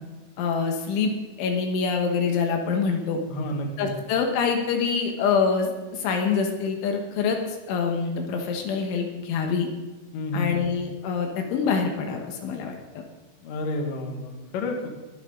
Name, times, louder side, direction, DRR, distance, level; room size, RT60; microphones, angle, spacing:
voice 1, 0.4-1.1 1.4-3.2 3.8-9.7 10.3-13.0, left 5 dB, 75° left, 3 dB, 3.6 m, -25 dB
voice 2, 3.3-3.9 10.1-10.5 13.4-14.9, left 2 dB, 55° left, 2 dB, 2.9 m, -30 dB
21.0 x 12.0 x 3.9 m, 1.2 s
omnidirectional pair, 5.8 m